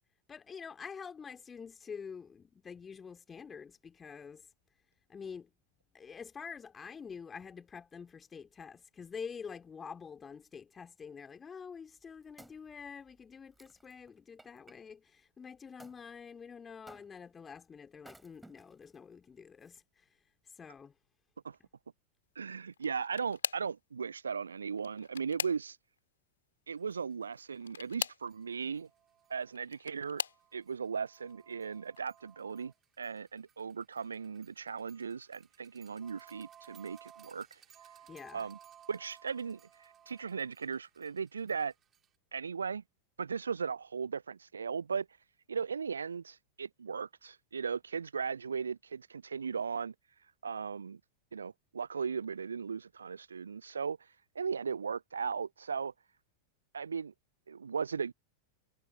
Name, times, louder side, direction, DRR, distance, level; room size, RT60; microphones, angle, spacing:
voice 1, 0.3-4.5 5.1-5.5 5.9-20.9 38.1-38.5, left 6 dB, 20° left, 2.7 m, -47 dB
Wood, 11.8-14.8 15.8-16.0 16.9-17.4 18.0-19.0 19.6-19.7, right 2 dB, 5° right, 5.0 m, -58 dB
voice 2, 22.4-25.8 26.7-28.9 29.3-30.2 30.5-37.6 38.3-38.6 38.9-41.7 42.3-42.8 43.2-45.1 45.5-49.9 50.4-51.0 51.3-54.0 54.4-55.9 56.7-57.1 57.5-58.1, right 6 dB, 70° right, 0.4 m, -37 dB
sound 1, 22.7-23.8 24.7-26.0 27.6-28.3 29.4-30.5 31.2-31.6 32.0-32.1 33.4-33.5, left 7 dB, 70° left, 2.0 m, -40 dB
sound 2, 26.9-27.0 27.4-27.5 27.8-27.9 28.2-42.1, right 9 dB, 25° right, 3.4 m, -60 dB
figure-of-eight pair, 90°, 0 cm